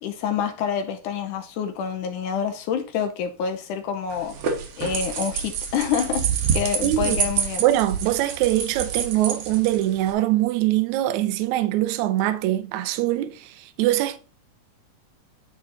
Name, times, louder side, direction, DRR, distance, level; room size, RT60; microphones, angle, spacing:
voice 1, 0.0-4.3 4.8-6.2 6.5-7.6, left 7 dB, 75° left, 2.1 m, -27 dB
sound 1, 4.1-10.1, right 7 dB, 60° right, 1.7 m, -27 dB
voice 2, 6.8-7.2 7.6-14.2, right 15 dB, 75° right, 1.8 m, -23 dB
9.9 x 3.9 x 3.9 m
omnidirectional pair, 4.0 m